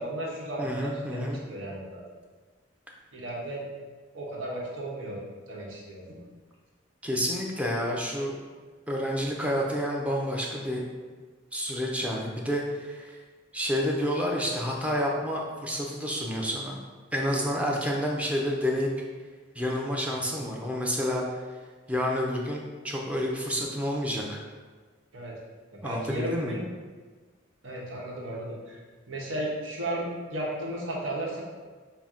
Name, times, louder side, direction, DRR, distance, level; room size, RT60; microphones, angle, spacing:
voice 1, 0.0-2.0 3.1-3.6 4.1-5.2 5.5-6.2 20.1-20.3 25.1-25.4 25.7-26.6 27.6-28.8 29.1-31.4, right 1 dB, 85° right, -4 dB, 1.0 m, -34 dB
voice 2, 0.6-1.4 7.0-8.3 8.9-10.8 11.5-13.2 13.5-16.8 17.1-18.9 19.6-21.2 21.9-24.4 25.8-26.6, equal, 5° right, -1 dB, 0.5 m, -29 dB
5.7 x 2.1 x 3.6 m, 1.4 s
head